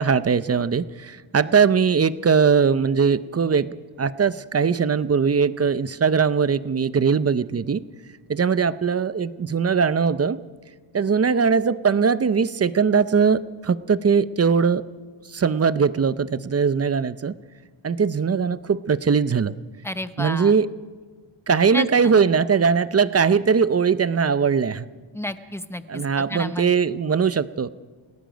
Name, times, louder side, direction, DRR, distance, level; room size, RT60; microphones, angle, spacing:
voice 1, 0.0-7.8 8.3-10.4 10.9-14.8 15.3-17.3 17.8-19.5 20.2-20.7 21.5-24.9 25.9-27.7, right 6 dB, 30° right, 15 dB, 0.5 m, -20 dB
voice 2, 19.8-20.5 21.7-22.1 25.1-26.7, left 1 dB, 5° left, 11 dB, 0.7 m, -31 dB
29.5 x 17.5 x 5.1 m, 1.4 s
wide cardioid pair, 140°, 49 cm